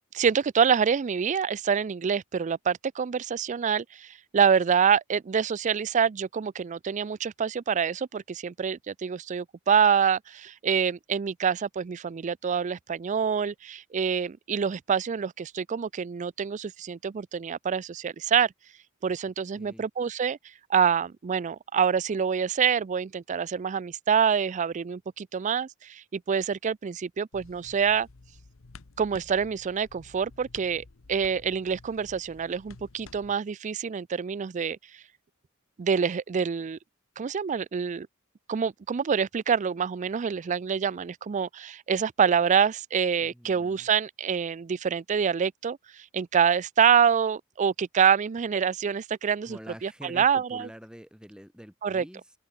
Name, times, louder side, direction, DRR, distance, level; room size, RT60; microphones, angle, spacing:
voice 1, 0.1-18.5 19.0-20.4 20.7-28.1 29.0-35.0 35.8-36.8 37.2-38.1 38.5-50.7 51.8-52.0, right 7 dB, 35° right, 0.4 m, -26 dB
voice 2, 19.6-19.9 43.2-43.9 49.4-52.3, equal, 5° right, 3.4 m, -46 dB
sound 1, 27.3-33.4, left 3 dB, 70° left, 1.0 m, -52 dB
open air
head